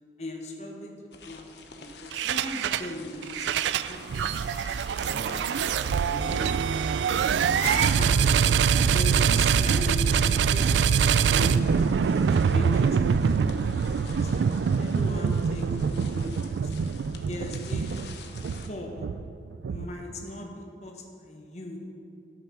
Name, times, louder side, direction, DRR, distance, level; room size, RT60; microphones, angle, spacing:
voice 1, 0.2-1.5 1.8-3.6 3.9-4.4 4.9-8.4 8.9-12.0 12.5-16.6 17.2-19.1 19.7-21.8, left 1 dB, 40° left, 1 dB, 1.2 m, -39 dB
sound 1, 1.1-18.7, left 4 dB, 80° left, 0.9 m, -48 dB
sound 2, 2.1-2.9 3.2-20.2, right 6 dB, 85° right, 0.3 m, -24 dB
sound 3, 7.6-10.3, left 1 dB, 15° left, 1.9 m, -39 dB
13.0 x 6.7 x 5.8 m, 2.5 s
head